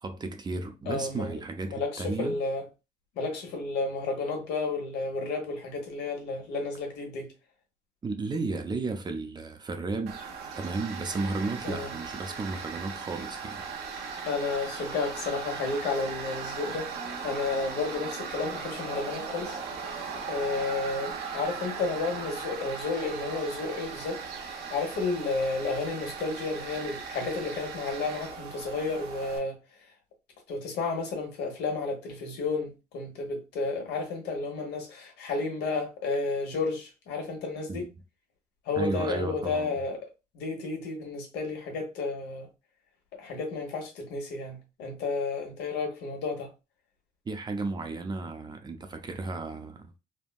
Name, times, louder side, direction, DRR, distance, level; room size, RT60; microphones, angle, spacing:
voice 1, 0.0-2.4 8.0-10.2 10.6-13.7 37.7-37.9 38.8-39.8 47.3-49.9, right 3 dB, 25° right, 0.5 m, -33 dB
voice 2, 0.9-1.4 1.7-2.6 3.2-7.3 11.6-11.9 14.2-16.9 17.2-19.6 20.3-24.2 24.4-29.6 30.5-37.9 38.7-40.1 40.3-42.5 43.1-46.5, left 3 dB, 85° left, 1.2 m, -32 dB
Tools, 10.1-29.4, right 5 dB, 80° right, 0.9 m, -38 dB
3.5 x 2.2 x 2.4 m
cardioid pair, 110°, 17 cm